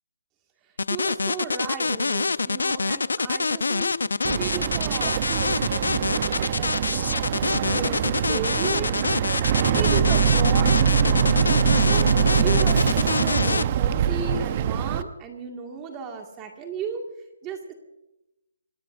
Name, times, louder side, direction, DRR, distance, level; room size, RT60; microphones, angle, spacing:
sound 1, 0.8-13.6, left 4 dB, 90° left, 0.7 m, -25 dB
voice 1, 0.9-4.0 4.3-5.8 6.1-9.0 9.7-11.4 11.8-12.1 12.4-17.0 17.4-17.7, right 5 dB, 15° right, 3 dB, 2.1 m, -35 dB
Boat Water vehicle, 4.2-15.0, right 8 dB, 35° right, 0.8 m, -23 dB
27.0 x 18.5 x 2.6 m, 0.91 s
hypercardioid pair, 160°, 0 cm